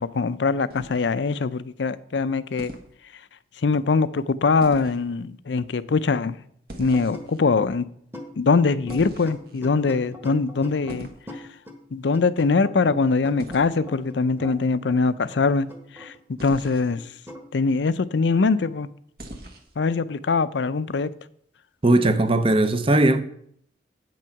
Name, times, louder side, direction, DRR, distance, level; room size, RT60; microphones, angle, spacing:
voice 1, 0.0-2.7 3.6-6.4 6.8-7.9 8.4-11.1 11.9-15.7 15.9-16.1 16.4-17.0 17.5-18.9 19.8-21.1, left 4 dB, 80° left, 0.5 m, -22 dB
sound 1, 0.7-1.4 2.6-2.9 4.6-5.0 6.7-7.4 8.9-9.6 10.9-11.2 13.4-13.7 16.4-16.9 19.2-19.8, right 1 dB, 55° right, 1.3 m, -40 dB
sound 2, 6.9-7.3 7.6-7.7 8.1-8.3 8.6-11.0 11.3-11.8 12.1-14.6 14.9-15.0 15.3-17.0 17.3-17.4, left 2 dB, 10° right, 1.3 m, -40 dB
voice 2, 21.8-23.2, right 2 dB, 30° right, 0.6 m, -18 dB
8.7 x 6.2 x 5.8 m
head